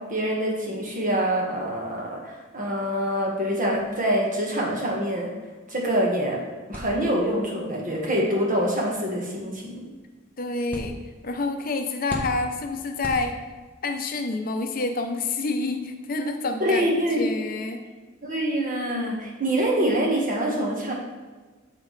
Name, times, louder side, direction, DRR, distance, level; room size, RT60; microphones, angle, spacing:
voice 1, 0.1-5.3 5.7-6.4 6.7-9.9 16.6-17.4 18.2-20.9, right 1 dB, 40° right, -2 dB, 1.5 m, -25 dB
sound 1, 6.7-13.8, equal, 10° left, 0.9 m, -41 dB
voice 2, 10.4-10.9 11.2-13.4 13.8-17.9, left 3 dB, 45° left, 5 dB, 0.6 m, -28 dB
7.4 x 6.0 x 3.2 m, 1.3 s
head